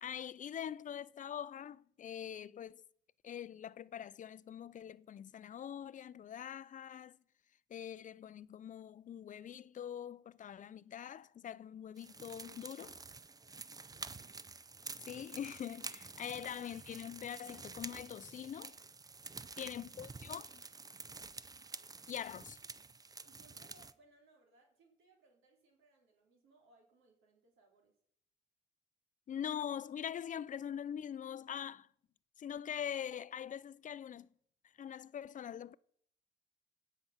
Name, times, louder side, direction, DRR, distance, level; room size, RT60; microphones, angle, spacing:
voice 1, 0.0-2.8 3.2-7.2 7.7-13.0 15.1-18.8 19.6-20.6 22.1-22.6 29.3-31.9 32.4-34.3 34.8-35.8, left 9 dB, 40° left, 0.4 m, -43 dB
sound 1, 12.0-23.9, right 4 dB, 20° right, 0.5 m, -49 dB
voice 2, 13.4-14.3 19.4-19.7 23.2-28.0, right 2 dB, 85° right, 3.0 m, -68 dB
17.5 x 5.9 x 5.7 m
cardioid pair, 90°, 20 cm